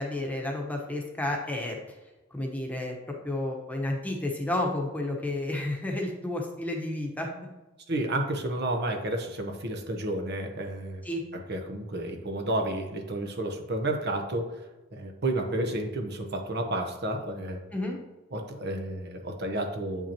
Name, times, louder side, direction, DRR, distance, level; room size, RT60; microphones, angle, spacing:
voice 1, 0.0-1.8 2.3-7.5 11.0-11.2 17.7-18.0, left 1 dB, 10° left, 0 dB, 1.1 m, -31 dB
voice 2, 7.9-11.0 11.3-17.6 18.3-20.1, right 1 dB, 55° right, 4 dB, 0.9 m, -31 dB
8.6 x 5.8 x 2.9 m, 1.1 s
head